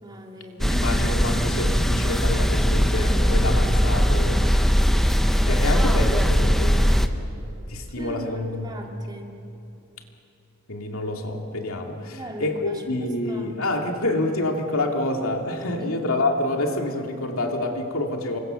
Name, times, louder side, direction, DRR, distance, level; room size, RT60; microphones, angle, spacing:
voice 1, 0.0-0.8 8.0-9.3 12.1-12.7 13.3-13.5 15.8-16.0, right 1 dB, 20° right, 0 dB, 2.7 m, -39 dB
voice 2, 0.6-4.4 4.7-4.9 5.4-7.1 7.7-8.7 10.7-18.4, left 2 dB, 70° left, 2 dB, 2.6 m, -27 dB
sound 1, 0.6-7.1, equal, ahead, 0.9 m, -20 dB
29.0 x 24.5 x 7.1 m, 2.8 s
head